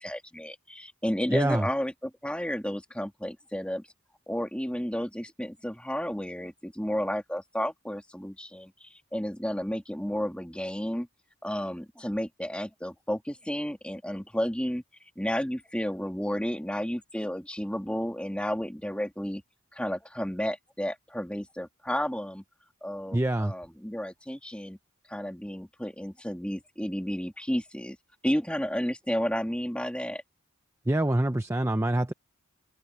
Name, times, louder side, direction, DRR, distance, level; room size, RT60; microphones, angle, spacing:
voice 1, 0.0-3.9 4.3-11.1 11.4-14.8 15.2-19.4 19.7-22.4 22.8-24.8 25.1-28.0 28.2-30.2, equal, 5° left, 2.2 m, -32 dB
voice 2, 1.3-1.7 23.1-23.5 30.9-32.1, right 1 dB, 10° right, 0.5 m, -25 dB
open air
head